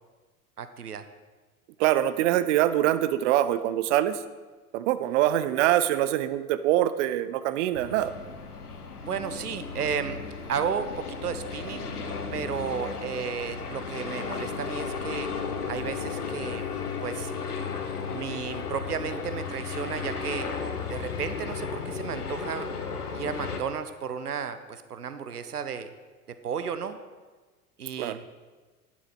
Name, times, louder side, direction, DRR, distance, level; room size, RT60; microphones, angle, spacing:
voice 1, 0.6-1.0 9.0-10.2 10.5-11.9 12.3-15.3 15.7-16.6 17.0-17.3 18.1-20.5 20.9-22.7 23.1-25.9 26.4-27.0 27.8-28.2, right 7 dB, 85° right, 11 dB, 0.7 m, -33 dB
voice 2, 1.8-4.2 4.7-8.1 28.0-28.2, right 13 dB, 55° right, 13 dB, 0.6 m, -24 dB
sound 1, 7.7-23.6, left 5 dB, 85° left, 1.0 m, -34 dB
11.0 x 6.2 x 6.1 m, 1.3 s
figure-of-eight pair, 80°, 44 cm